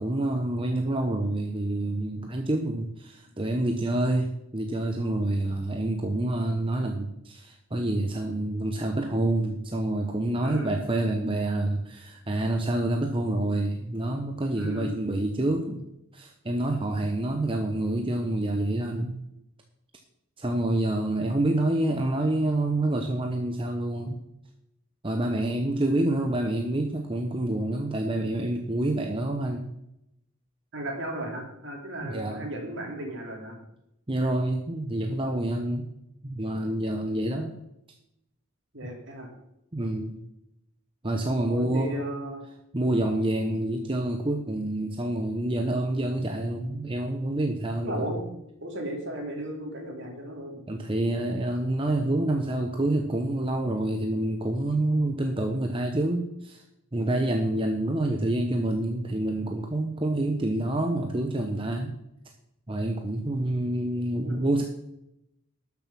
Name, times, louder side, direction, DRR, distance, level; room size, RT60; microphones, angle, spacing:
voice 1, 0.0-15.9 16.1-19.2 20.4-24.2 25.0-29.7 32.0-32.5 34.1-35.9 36.2-37.6 39.7-40.2 41.0-42.0 42.7-48.1 50.7-56.6 56.9-61.9 62.7-64.6, right 1 dB, 25° right, 3 dB, 0.8 m, -27 dB
voice 2, 10.4-10.7 14.5-14.9 30.7-33.6 38.7-39.3 41.3-42.4 47.8-48.2 48.6-50.6 64.2-64.4, right 1 dB, 55° right, 1 dB, 2.9 m, -35 dB
12.0 x 7.1 x 6.1 m, 0.83 s
head